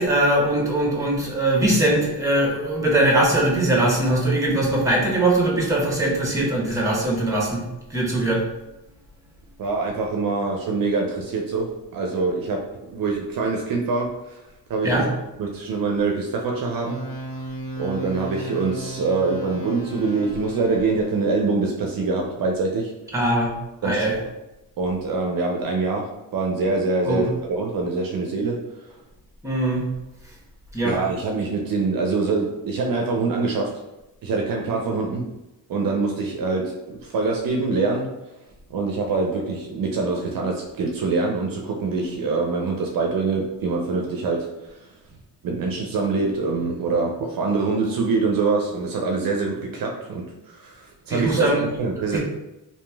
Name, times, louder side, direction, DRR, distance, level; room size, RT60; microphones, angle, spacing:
voice 1, 0.0-7.6 7.9-8.4 14.8-15.0 23.1-23.5 23.8-24.1 27.0-27.2 29.4-29.8 30.7-31.0 51.1-51.7 52.1-52.2, right 1 dB, 10° right, -3 dB, 0.9 m, -21 dB
voice 2, 9.6-11.7 11.9-12.6 12.9-14.1 14.7-15.1 15.4-17.0 17.8-22.9 23.8-24.3 24.8-26.1 26.3-28.6 30.8-33.7 34.2-35.2 35.7-38.1 38.7-44.4 45.4-51.5 51.8-52.2, right 3 dB, 55° right, 0 dB, 0.5 m, -24 dB
sound 1, 16.8-21.3, right 1 dB, 60° left, 0.8 m, -35 dB
2.9 x 2.7 x 2.3 m, 0.95 s
supercardioid pair, 60°, 41 cm